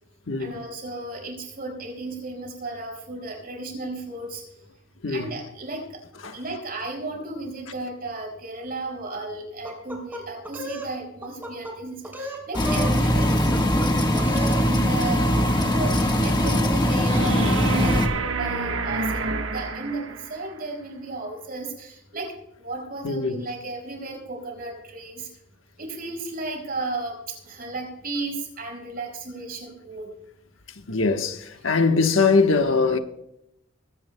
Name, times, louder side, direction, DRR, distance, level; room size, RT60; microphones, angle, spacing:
voice 1, 0.4-4.4 5.1-6.0 6.3-25.3 25.8-30.1, right 2 dB, 50° right, 5.1 m, -34 dB
voice 2, 5.0-5.3 6.2-6.4 23.0-23.4 30.9-33.0, left 4 dB, 70° left, 1.1 m, -22 dB
sound 1, 9.6-10.9 11.2-11.7 12.0-13.0 13.3-13.9 14.2-14.6, right 1 dB, 10° right, 3.2 m, -35 dB
sound 2, 12.5-18.1, equal, 20° left, 1.4 m, -21 dB
sound 3, 17.1-20.4 23.1-23.2, right 3 dB, 75° right, 1.2 m, -28 dB
20.5 x 17.0 x 2.2 m
head